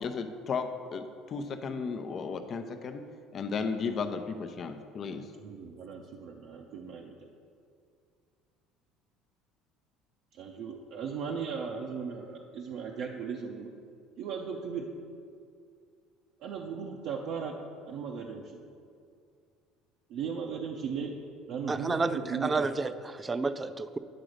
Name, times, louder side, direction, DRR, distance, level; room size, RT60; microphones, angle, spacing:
voice 1, 0.0-3.0 3.3-5.3, left 5 dB, 45° left, 8 dB, 0.6 m, -34 dB
voice 2, 5.4-7.3 10.3-13.7 14.2-14.9 16.4-17.5 17.9-18.6 20.1-21.1 21.5-22.7, right 6 dB, 65° right, -1 dB, 0.6 m, -37 dB
voice 3, 21.7-24.0, right 3 dB, 20° right, 12 dB, 0.3 m, -30 dB
8.8 x 3.9 x 6.4 m, 2.3 s
supercardioid pair, 90°, 0 cm